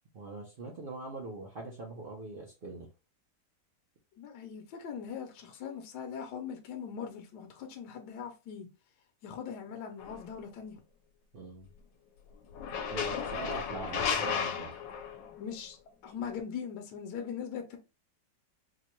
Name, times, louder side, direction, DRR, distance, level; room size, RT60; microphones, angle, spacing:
voice 1, 0.1-2.9 11.3-11.7 12.9-14.7, right 2 dB, 75° right, 0.4 m, -42 dB
voice 2, 4.2-8.7 9.2-10.8 13.1-13.6 15.4-15.8 16.0-17.8, left 7 dB, 70° left, 1.2 m, -41 dB
sound 1, 10.0-10.2 12.5-15.4, left 7 dB, 85° left, 1.3 m, -34 dB
4.1 x 2.2 x 3.0 m
omnidirectional pair, 2.0 m